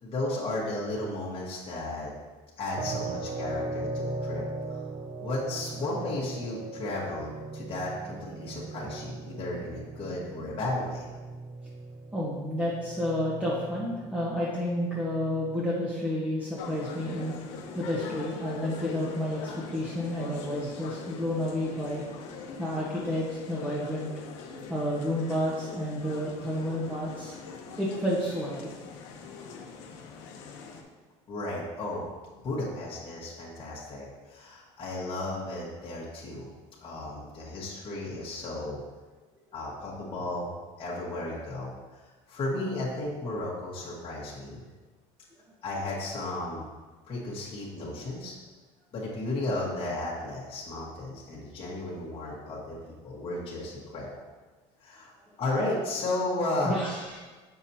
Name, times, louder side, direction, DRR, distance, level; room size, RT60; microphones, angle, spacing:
voice 1, 0.0-2.1 2.6-4.4 4.7-4.8 5.2-11.0 31.3-32.1 32.4-36.5 36.8-38.8 39.5-40.5 40.8-44.6 45.6-46.7 47.1-48.3 48.9-54.1 54.8-55.1 55.4-56.8, left 2 dB, 35° left, -6 dB, 1.5 m, -34 dB
sound 1, 2.8-15.8, right 2 dB, 30° right, 0.5 m, -39 dB
voice 2, 12.1-17.3 17.7-22.0 22.6-24.1 24.7-27.3 27.8-28.7 56.6-57.2, equal, 10° right, -7 dB, 1.1 m, -30 dB
sound 2, 16.6-30.8, left 5 dB, 80° left, 0.8 m, -42 dB
7.0 x 5.8 x 2.8 m, 1.3 s
supercardioid pair, 110°, 15 cm